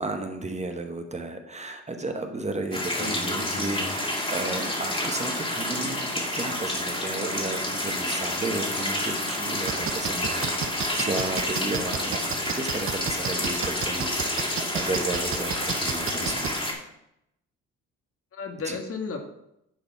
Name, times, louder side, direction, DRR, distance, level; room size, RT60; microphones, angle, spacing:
voice 1, 0.0-10.5 11.0-16.5 18.6-18.8, right 2 dB, 25° right, 5 dB, 1.1 m, -33 dB
sound 1, 2.7-16.7, left 1 dB, 20° left, 2.5 m, -29 dB
voice 2, 3.0-4.0 16.0-16.4 18.3-19.2, left 4 dB, 50° left, 4 dB, 1.7 m, -35 dB
sound 2, 9.7-16.5, right 7 dB, 45° right, 0.9 m, -31 dB
10.5 x 4.0 x 5.8 m, 0.80 s
cardioid pair, 90°, 30 cm